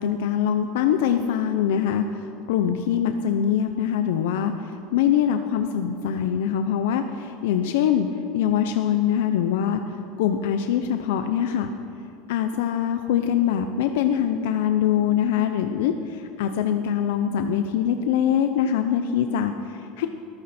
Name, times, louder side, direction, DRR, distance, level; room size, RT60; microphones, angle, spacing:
voice 1, 0.0-2.0 2.5-8.1 8.3-9.8 10.2-11.7 12.3-20.1, left 9 dB, 80° left, 7 dB, 0.8 m, -23 dB
22.5 x 14.0 x 4.4 m, 2.7 s
supercardioid pair, 150°, 0 cm